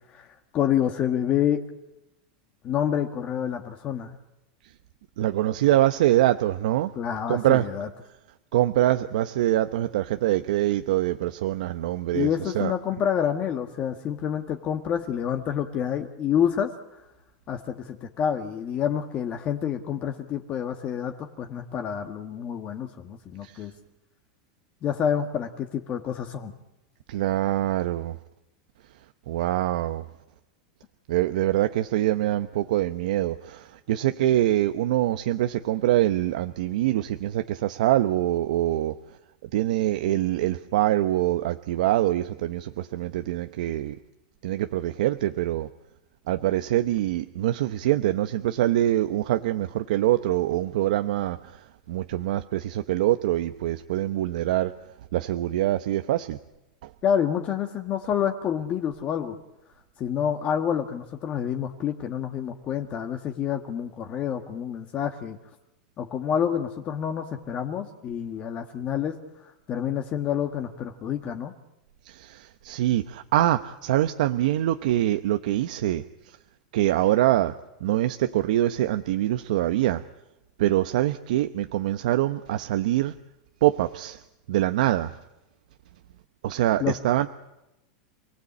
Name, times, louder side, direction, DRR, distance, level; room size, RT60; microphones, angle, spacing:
voice 1, 0.5-1.6 2.6-4.2 6.9-7.9 12.1-16.7 17.5-23.7 24.8-26.5 57.0-59.4 60.0-65.4 66.0-71.5 86.8-87.0, left 9 dB, 30° left, 1.6 m, -28 dB
voice 2, 5.2-6.9 7.3-7.7 8.5-12.7 23.4-23.6 27.1-28.2 29.3-30.0 31.1-39.0 39.4-44.0 44.4-45.7 46.3-54.7 55.1-56.4 72.0-76.4 76.7-77.5 77.8-80.0 80.6-83.1 83.6-84.2 84.5-85.2 86.4-87.3, right 14 dB, 75° right, 0.9 m, -24 dB
28.0 x 18.5 x 8.5 m
supercardioid pair, 145°, 4 cm